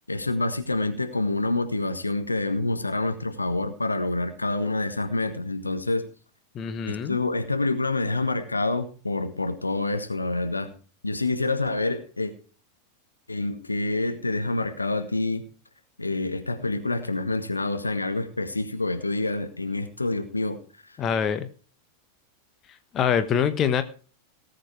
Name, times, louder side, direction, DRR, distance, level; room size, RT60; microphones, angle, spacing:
voice 1, 0.1-6.1 6.9-10.7 11.0-12.3 13.3-15.4 16.0-20.6, left 2 dB, 80° left, 8 dB, 1.5 m, -27 dB
voice 2, 6.5-7.2 21.0-21.5 22.9-23.8, left 8 dB, 30° left, 11 dB, 1.3 m, -24 dB
18.0 x 7.9 x 4.6 m, 0.38 s
figure-of-eight pair, 90°, 0 cm